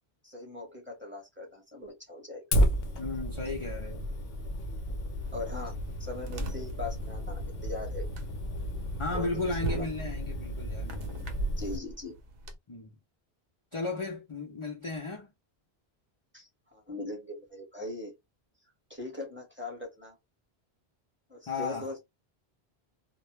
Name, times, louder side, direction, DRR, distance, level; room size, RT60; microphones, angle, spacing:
voice 1, 0.2-2.4 5.3-5.7 6.0-8.1 9.1-9.3 9.7-9.8 11.6-12.2 16.3-18.1 18.9-20.2 21.3-22.0, left 2 dB, 10° right, 0.9 m, -40 dB
Fire, 2.5-11.8, equal, 70° left, 0.8 m, -33 dB
voice 2, 2.9-4.1 6.3-6.5 9.0-11.4 12.7-13.0 13.7-15.3 21.5-21.9, left 3 dB, 40° left, 0.5 m, -35 dB
sound 1, 5.2-12.6, right 2 dB, 70° right, 0.7 m, -40 dB
2.2 x 2.1 x 3.0 m
omnidirectional pair, 1.1 m